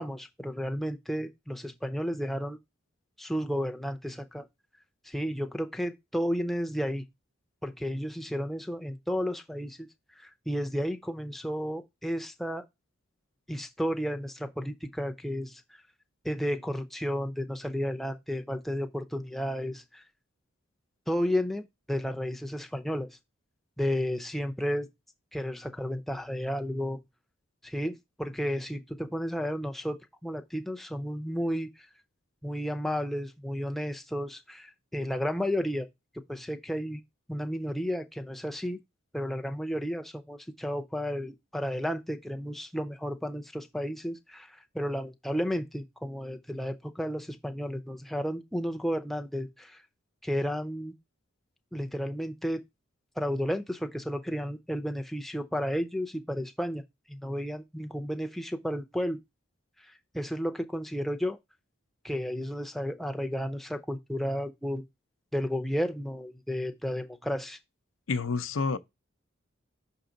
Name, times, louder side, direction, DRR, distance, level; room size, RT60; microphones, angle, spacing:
voice 1, 0.0-2.6 3.2-4.5 5.0-7.0 7.6-9.9 10.2-12.7 13.5-15.6 16.2-20.0 21.1-23.2 23.8-24.9 25.3-27.0 27.6-31.9 32.4-35.9 36.3-37.0 37.3-38.8 39.1-49.8 50.2-50.9 51.7-52.6 53.2-56.8 57.1-59.2 60.1-61.4 62.0-64.8 65.3-67.6, equal, ahead, 0.5 m, -32 dB
voice 2, 68.1-68.8, left 4 dB, 85° left, 0.6 m, -28 dB
5.9 x 4.7 x 3.9 m
head